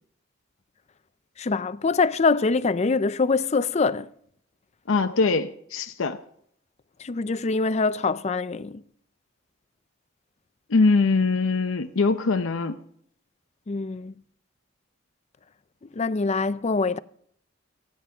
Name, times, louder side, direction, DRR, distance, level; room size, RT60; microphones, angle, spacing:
voice 1, 1.4-4.1 7.0-8.8 13.7-14.1 16.0-17.0, left 4 dB, 35° left, 0.5 m, -24 dB
voice 2, 4.9-6.2 10.7-12.8, left 3 dB, 85° left, 0.7 m, -22 dB
28.5 x 10.0 x 3.5 m
head